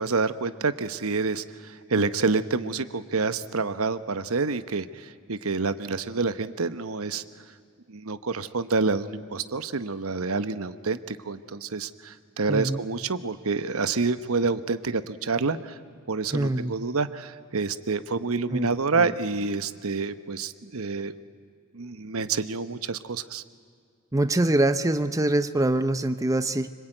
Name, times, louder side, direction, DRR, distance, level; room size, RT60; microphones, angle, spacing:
voice 1, 0.0-7.2 7.9-15.8 16.1-21.1 21.7-23.4, right 4 dB, 70° right, 12 dB, 1.0 m, -28 dB
voice 2, 12.5-12.8 16.3-16.7 18.5-19.1 24.1-26.7, right 1 dB, 15° right, 10 dB, 0.6 m, -24 dB
26.0 x 25.0 x 9.0 m, 2.2 s
head